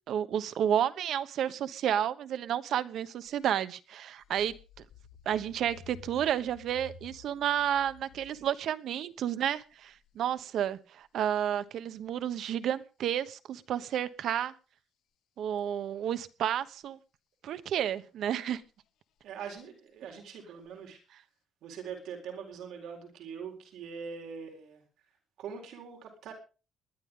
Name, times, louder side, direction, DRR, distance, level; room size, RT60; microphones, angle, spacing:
voice 1, 0.1-4.6 5.2-14.5 15.4-17.0 17.4-18.6, right 10 dB, 65° right, 13 dB, 1.1 m, -31 dB
sound 1, 3.3-3.4 3.9-8.7 9.7-10.1 12.3-12.4 19.6-19.7 20.2-20.3 20.7-20.8, left 7 dB, 80° left, 1.3 m, -53 dB
voice 2, 19.2-21.0 21.6-24.8 25.4-26.3, right 6 dB, 85° right, 3 dB, 4.2 m, -42 dB
20.5 x 11.5 x 3.8 m, 0.34 s
cardioid pair, 150°, 0 cm